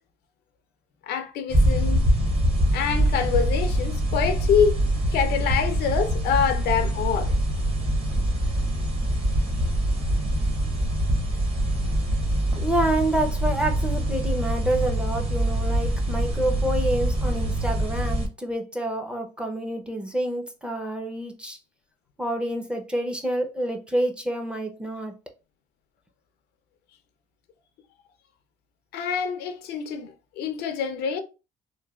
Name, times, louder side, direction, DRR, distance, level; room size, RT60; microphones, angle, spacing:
voice 1, 1.0-2.0 2.7-4.8 5.1-7.3 28.9-31.2, left 7 dB, 70° left, 0.5 m, -25 dB
sound 1, 1.5-18.3, right 1 dB, 35° right, 0.9 m, -24 dB
voice 2, 12.6-21.6 22.2-25.1, right 1 dB, 5° right, 0.5 m, -28 dB
3.1 x 2.1 x 2.3 m
cardioid pair, 110°, 17 cm